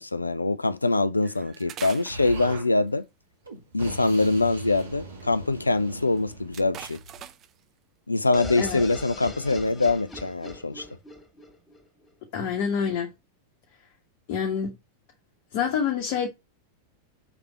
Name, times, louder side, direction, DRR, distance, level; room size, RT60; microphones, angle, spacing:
voice 1, 0.0-3.0 3.7-7.0 8.1-10.8, left 2 dB, 80° left, 0.4 m, -24 dB
sound 1, 1.2-3.0 4.4-4.8 5.2-5.3 5.5-5.6 6.1-7.6 8.6-8.8 9.3-9.7 10.1-10.4, right 10 dB, 30° right, 0.7 m, -44 dB
Explosion, 2.1-2.7 3.4-7.3, right 2 dB, 75° right, 1.6 m, -39 dB
sound 2, 8.3-12.1, left 3 dB, 20° left, 2.0 m, -41 dB
voice 2, 12.3-13.1 14.3-14.7 15.5-16.3, left 7 dB, 45° left, 1.1 m, -26 dB
5.8 x 3.5 x 5.6 m
figure-of-eight pair, 90°, 0 cm